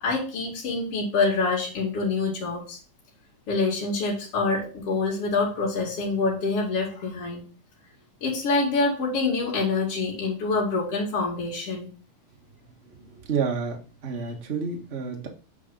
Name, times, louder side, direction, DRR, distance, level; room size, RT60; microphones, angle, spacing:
voice 1, 0.0-2.8 3.5-7.4 8.2-11.9, left 3 dB, 45° left, -5 dB, 3.2 m, -26 dB
voice 2, 12.8-15.3, right 5 dB, 75° right, 1 dB, 0.5 m, -30 dB
8.1 x 4.6 x 3.9 m, 0.36 s
omnidirectional pair, 3.7 m